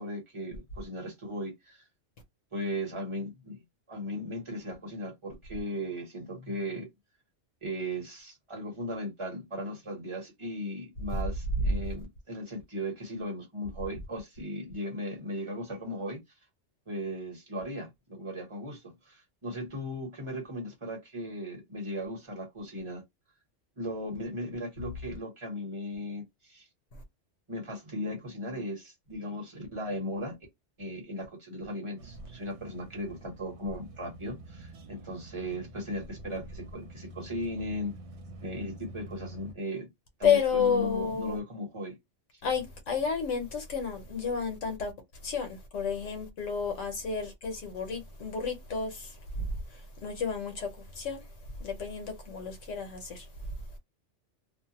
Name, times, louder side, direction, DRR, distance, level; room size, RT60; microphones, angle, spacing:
voice 1, 0.0-1.8 2.5-3.6 3.9-6.9 7.6-16.2 16.9-23.0 23.8-26.7 27.5-30.3 30.8-37.9 38.4-39.9 40.2-42.0, equal, 25° right, 1.0 m, -37 dB
sound 1, 32.0-39.5, right 1 dB, 70° right, 1.0 m, -47 dB
voice 2, 40.2-41.4 42.4-44.9 45.2-53.5, left 5 dB, 90° left, 1.2 m, -31 dB
2.6 x 2.1 x 2.8 m
omnidirectional pair, 1.2 m